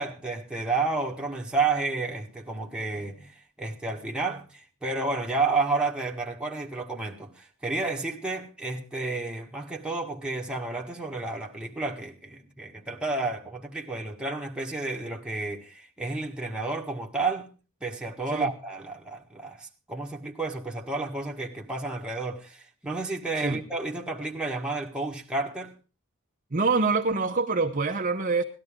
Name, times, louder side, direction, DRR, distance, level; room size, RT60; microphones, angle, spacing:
voice 1, 0.0-17.5 17.8-25.7, right 3 dB, 5° right, 1.6 m, -31 dB
voice 2, 26.5-28.4, right 4 dB, 35° right, 0.9 m, -25 dB
18.0 x 12.0 x 3.6 m
head